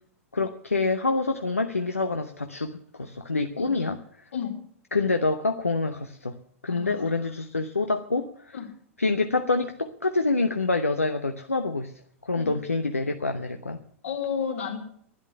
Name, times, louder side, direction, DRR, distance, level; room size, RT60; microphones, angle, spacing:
voice 1, 0.3-4.3 4.9-6.4 6.6-8.6 9.0-11.9 12.2-13.8, left 3 dB, 85° left, 7 dB, 0.9 m, -26 dB
voice 2, 6.7-7.3 8.5-8.7 12.4-12.6 14.0-14.8, left 7 dB, 65° left, 2 dB, 3.3 m, -32 dB
11.5 x 10.5 x 9.7 m, 0.64 s
figure-of-eight pair, 90°, 7 cm